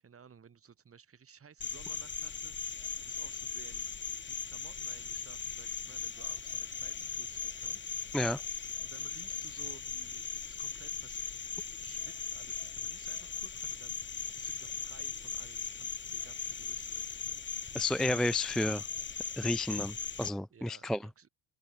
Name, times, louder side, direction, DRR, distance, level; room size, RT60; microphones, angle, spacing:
voice 1, 0.0-3.9 4.3-7.9 8.8-11.2 11.8-17.4 20.5-21.3, right 7 dB, 35° right, 4.9 m, -57 dB
Cricket, 1.6-20.3, left 6 dB, 25° left, 2.0 m, -39 dB
voice 2, 17.7-18.8 19.4-21.0, left 1 dB, ahead, 0.4 m, -31 dB
supercardioid pair, 85°, 41 cm